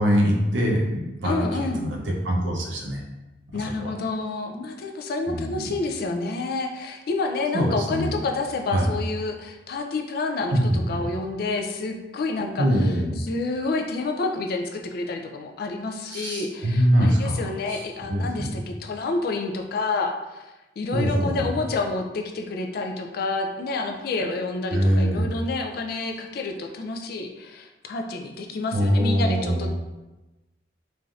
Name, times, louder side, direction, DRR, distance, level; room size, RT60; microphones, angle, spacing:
voice 1, 0.0-3.0 3.5-3.9 5.3-5.7 7.5-8.2 8.7-8.9 10.5-11.0 12.6-13.2 16.1-17.8 18.1-18.5 20.9-21.5 24.7-25.3 28.7-29.7, equal, 80° right, 0 dB, 0.6 m, -23 dB
voice 2, 1.2-1.8 3.5-29.7, left 3 dB, 55° left, 4 dB, 0.3 m, -29 dB
3.2 x 2.6 x 2.4 m, 1.1 s
head